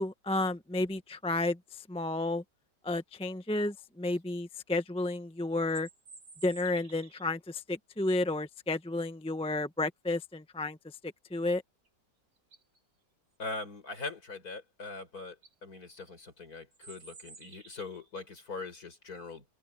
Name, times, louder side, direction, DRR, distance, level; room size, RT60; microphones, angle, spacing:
voice 1, 0.0-2.4 2.8-5.9 6.4-10.8 11.3-11.6, left 2 dB, 5° left, 0.6 m, -32 dB
sound 1, 5.5-7.3 11.8-11.9 12.4-12.8 14.8-14.9 15.3-15.5 16.7-18.1, right 4 dB, 65° right, 3.3 m, -53 dB
voice 2, 13.4-19.4, left 3 dB, 55° left, 5.3 m, -42 dB
open air
omnidirectional pair, 1.9 m